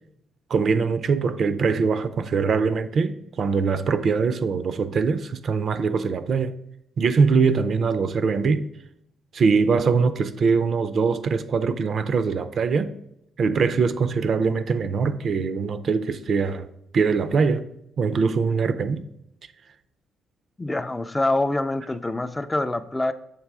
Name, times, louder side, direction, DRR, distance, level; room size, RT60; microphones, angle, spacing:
voice 1, 0.5-6.5 7.0-8.7 9.3-12.9 13.4-16.7 16.9-17.6 18.0-19.0, right 5 dB, 55° right, 0.4 m, -22 dB
voice 2, 20.6-23.1, left 2 dB, 15° left, 0.3 m, -25 dB
6.7 x 3.2 x 4.7 m
cardioid pair, 90°, 0 cm